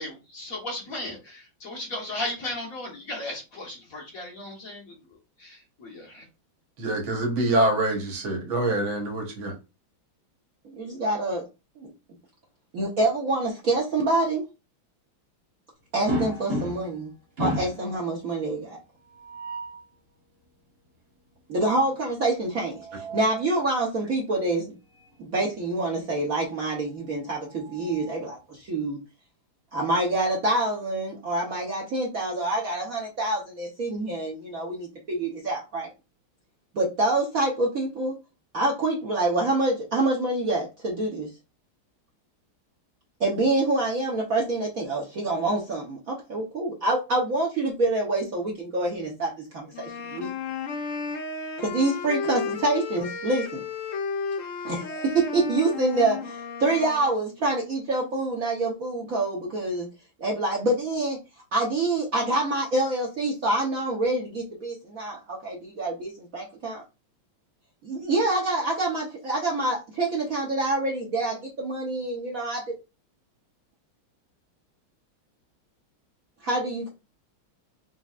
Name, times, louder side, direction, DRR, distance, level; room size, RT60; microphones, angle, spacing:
voice 1, 0.0-4.8 5.4-6.2, left 1 dB, 45° left, 1.6 m, -35 dB
voice 2, 6.8-9.5, right 2 dB, 70° right, 2.0 m, -25 dB
voice 3, 10.6-11.5 11.8-11.9 12.7-14.4 15.9-17.1 17.4-18.8 21.5-24.7 25.2-29.0 29.7-35.9 36.7-38.1 38.5-41.3 43.2-50.3 51.6-53.6 54.6-59.9 60.2-61.2 61.5-66.8 67.8-72.7 76.4-76.9, right 2 dB, 50° right, 1.1 m, -26 dB
sound 1, 16.1-17.0 17.4-17.9 19.1-19.8 22.5-23.5 24.9-25.1 25.5-25.6 27.1-28.4, equal, 35° right, 1.5 m, -33 dB
sound 2, 49.7-57.2, left 5 dB, 75° left, 0.7 m, -33 dB
4.3 x 4.0 x 2.4 m
omnidirectional pair, 2.3 m